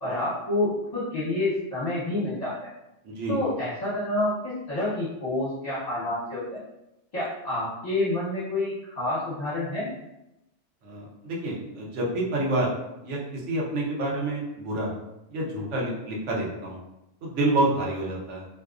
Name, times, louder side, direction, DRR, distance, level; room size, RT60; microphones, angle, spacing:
voice 1, 0.0-2.7 3.3-6.6 7.1-9.9, left 1 dB, 35° left, -10 dB, 1.0 m, -28 dB
voice 2, 3.0-3.4 10.8-12.7 13.0-14.9 15.3-16.8 17.2-18.4, right 2 dB, 75° right, -3 dB, 1.1 m, -28 dB
3.5 x 2.7 x 2.4 m, 0.90 s
omnidirectional pair, 1.3 m